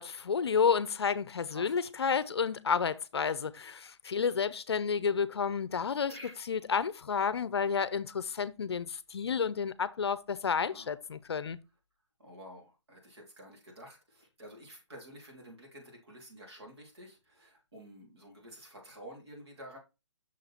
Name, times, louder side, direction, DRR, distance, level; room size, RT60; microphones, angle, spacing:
voice 1, 0.0-6.1 6.5-11.6, left 6 dB, 60° left, 0.5 m, -31 dB
voice 2, 6.1-6.4 10.6-11.0 12.2-19.8, equal, 60° right, 3.2 m, -50 dB
6.3 x 4.0 x 4.3 m
hypercardioid pair, 170°, 15 cm